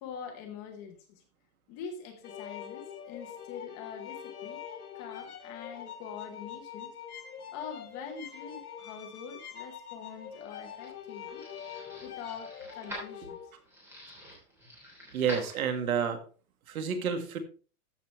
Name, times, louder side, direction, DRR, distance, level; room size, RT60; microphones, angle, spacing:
voice 1, 0.0-1.2 1.7-4.6 4.9-6.9 7.5-11.4 12.0-13.4, left 7 dB, 20° left, 4 dB, 0.9 m, -44 dB
sound 1, 2.2-13.5, left 8 dB, 80° left, 2.8 m, -44 dB
sound 2, 10.1-16.1, left 1 dB, 5° right, 3.1 m, -46 dB
voice 2, 15.1-16.2 16.7-17.4, right 7 dB, 70° right, 7 dB, 2.0 m, -29 dB
13.5 x 6.8 x 3.2 m, 0.36 s
supercardioid pair, 180°, 44 cm